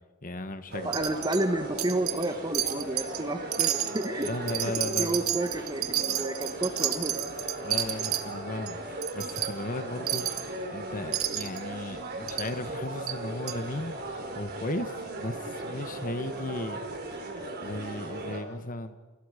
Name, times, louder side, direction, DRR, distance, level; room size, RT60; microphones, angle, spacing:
voice 1, 0.2-1.0 4.2-5.2 7.6-16.8 17.1-17.2 17.6-19.0, left 2 dB, 40° left, 9 dB, 1.5 m, -36 dB
sound 1, 0.7-18.4, right 2 dB, 50° right, 4.5 m, -37 dB
voice 2, 0.8-4.3 4.6-4.7 5.0-7.1, right 1 dB, 20° right, 8 dB, 1.8 m, -31 dB
Wind chime, 0.9-1.4 1.8-2.3 2.5-3.2 3.5-8.2 8.7-8.8 9.0-9.5 10.1-10.5 11.1-11.6 12.3-12.5 13.1-13.2 13.5-13.6, right 12 dB, 85° right, 1.8 m, -30 dB
29.5 x 28.0 x 5.2 m, 1.2 s
head